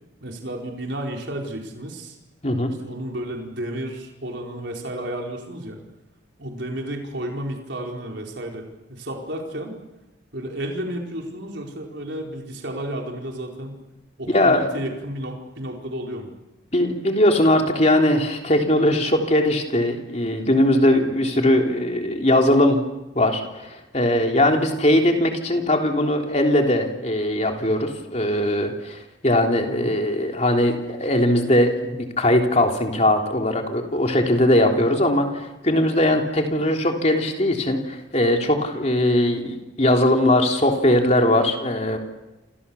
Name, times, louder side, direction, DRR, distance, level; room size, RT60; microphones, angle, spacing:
voice 1, 0.2-2.2 2.8-5.8 6.4-9.8 10.3-13.8 14.2-16.3 24.4-24.7 29.7-30.0, right 1 dB, 60° right, 1 dB, 4.6 m, -32 dB
voice 2, 14.3-14.7 16.7-22.8 23.2-42.0, left 1 dB, 35° left, 3 dB, 3.5 m, -20 dB
29.0 x 28.5 x 7.2 m, 1.0 s
head